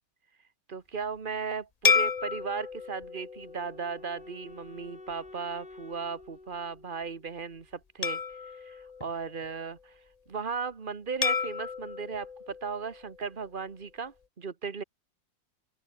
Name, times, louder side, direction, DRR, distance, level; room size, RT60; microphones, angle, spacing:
voice 1, 0.7-9.9 10.3-14.8, right 5 dB, 30° right, 1.4 m, -36 dB
sound 1, 1.8-4.5 5.1-5.3 8.0-9.8 11.2-13.5, left 5 dB, 70° left, 0.3 m, -32 dB
Wind instrument woodwind instrument, 2.7-7.8, left 2 dB, 25° left, 2.7 m, -50 dB
open air
omnidirectional pair, 2.1 m